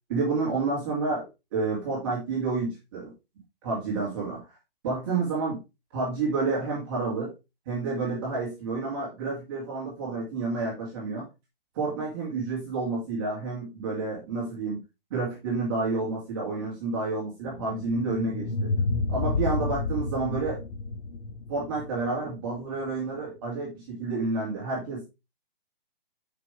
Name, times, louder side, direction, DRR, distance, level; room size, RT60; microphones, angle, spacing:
voice 1, 0.1-1.3 1.5-3.1 3.6-4.4 4.8-5.6 5.9-7.3 7.7-11.2 11.7-14.8 15.1-18.7 19.1-20.6 21.5-25.0, right 3 dB, 25° right, -4 dB, 2.5 m, -29 dB
sound 1, 17.5-22.6, left 3 dB, 85° left, 1.5 m, -30 dB
7.7 x 6.0 x 3.4 m, 0.25 s
hypercardioid pair, 180°, 29 cm